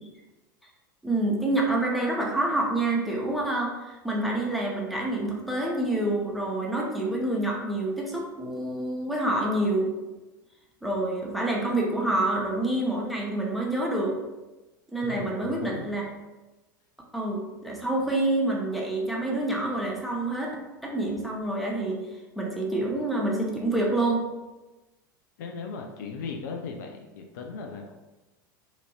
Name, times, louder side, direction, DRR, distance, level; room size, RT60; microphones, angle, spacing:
voice 1, 1.0-9.9 10.8-14.1 14.9-16.0 17.1-22.0 22.4-24.3, right 2 dB, ahead, -2 dB, 0.6 m, -27 dB
voice 2, 15.0-15.9 25.4-27.9, left 4 dB, 60° left, 3 dB, 0.4 m, -37 dB
2.9 x 2.5 x 2.7 m, 1.1 s
figure-of-eight pair, 85°, 11 cm